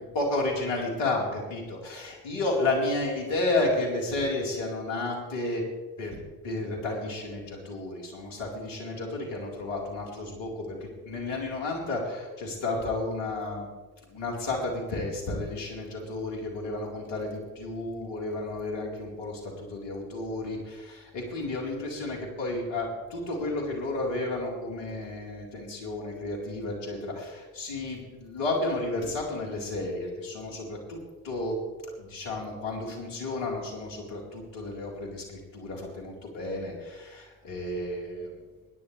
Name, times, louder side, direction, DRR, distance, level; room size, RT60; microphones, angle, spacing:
voice 1, 0.0-5.6 6.0-6.2 6.4-10.8 11.0-13.7 14.1-31.0 31.2-31.6 32.0-38.3, left 2 dB, 60° left, -1 dB, 4.4 m, -32 dB
23.5 x 10.5 x 3.4 m, 1.3 s
hypercardioid pair, 55°, 49 cm